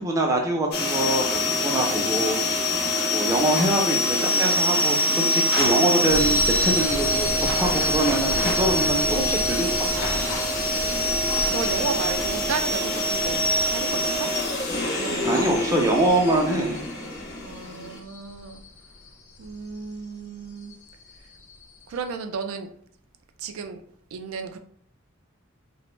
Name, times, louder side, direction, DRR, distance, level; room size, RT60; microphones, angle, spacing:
voice 1, 0.0-2.8 3.1-10.1 10.5-10.6 15.2-16.8, right 1 dB, 15° right, 0 dB, 0.4 m, -24 dB
sound 1, 0.7-18.0, left 1 dB, 50° left, 0.5 m, -24 dB
sound 2, 6.1-22.2, left 2 dB, 85° left, 0.7 m, -35 dB
voice 2, 10.7-11.0 11.5-14.3 15.0-15.5 17.4-18.6 19.4-20.7 21.9-22.7 23.4-23.8 24.1-24.6, right 5 dB, 85° right, 7 dB, 0.4 m, -33 dB
2.5 x 2.1 x 3.1 m, 0.63 s
head